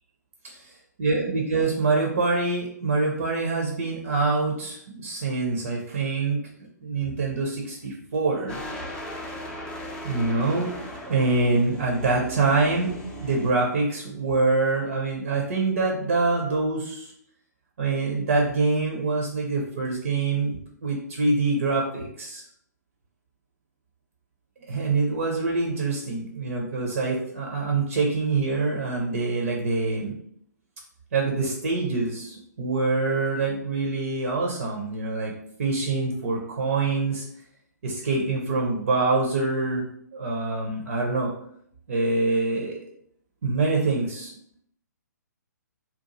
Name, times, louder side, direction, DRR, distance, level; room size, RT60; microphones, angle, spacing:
voice 1, 1.0-6.5 6.8-8.6 10.0-10.7 11.0-12.9 13.2-17.1 17.8-22.4 24.7-30.1 31.1-35.3 35.6-37.3 37.8-39.9 40.1-41.3 41.9-42.8 43.4-44.3, right 3 dB, 55° right, 0 dB, 0.6 m, -25 dB
sound 1, 8.5-13.5, left 1 dB, 10° left, 0.5 m, -37 dB
2.8 x 2.3 x 3.8 m, 0.69 s
figure-of-eight pair, 125°, 10 cm